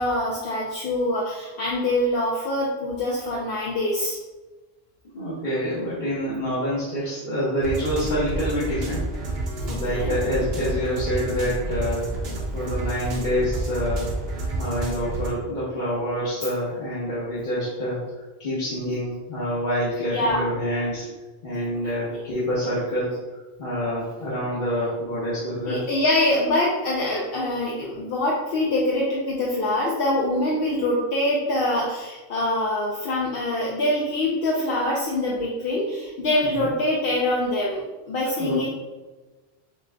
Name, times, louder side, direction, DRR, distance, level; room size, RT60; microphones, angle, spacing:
voice 1, 0.0-4.2 9.6-10.2 20.1-20.5 22.1-22.2 25.7-38.7, left 1 dB, 70° left, -3 dB, 0.8 m, -24 dB
voice 2, 5.1-9.1 9.7-12.3 12.5-14.1 14.6-18.0 18.4-21.1 21.4-23.1 23.6-25.8 36.4-36.7 38.4-38.7, equal, 50° left, -10 dB, 1.1 m, -27 dB
sound 1, 7.6-15.3, right 2 dB, 75° right, 1.0 m, -29 dB
6.5 x 2.5 x 2.2 m, 1.2 s
omnidirectional pair, 1.1 m